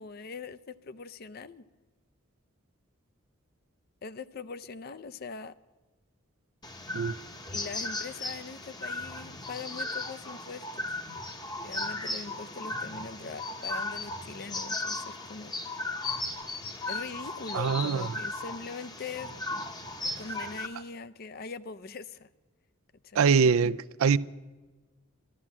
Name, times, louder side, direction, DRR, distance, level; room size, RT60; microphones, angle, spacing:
voice 1, 0.0-1.6 4.0-5.5 7.5-10.9 11.6-15.6 16.9-19.3 20.2-22.3 23.0-23.2, left 4 dB, 45° left, 0.5 m, -42 dB
sound 1, 6.6-20.7, left 2 dB, 20° left, 0.8 m, -36 dB
voice 2, 17.5-18.1 23.1-24.2, right 6 dB, 80° right, 0.4 m, -23 dB
13.5 x 12.0 x 7.4 m
head